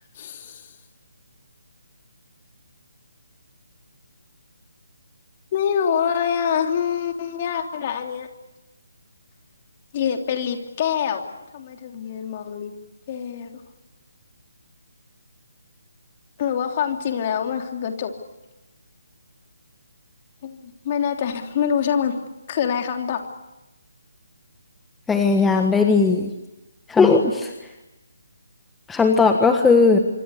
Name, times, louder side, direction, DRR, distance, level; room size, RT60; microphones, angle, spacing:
voice 1, 0.1-0.7 5.5-8.3 9.9-11.2 11.5-12.7 13.1-13.5 16.4-18.1 20.4-22.2 22.5-23.2, left 8 dB, 35° left, 4 dB, 3.1 m, -25 dB
voice 2, 25.1-26.3 26.9-27.5 28.9-30.0, left 4 dB, 5° left, 4 dB, 1.5 m, -17 dB
26.0 x 25.5 x 8.4 m, 0.99 s
figure-of-eight pair, 145°, 0 cm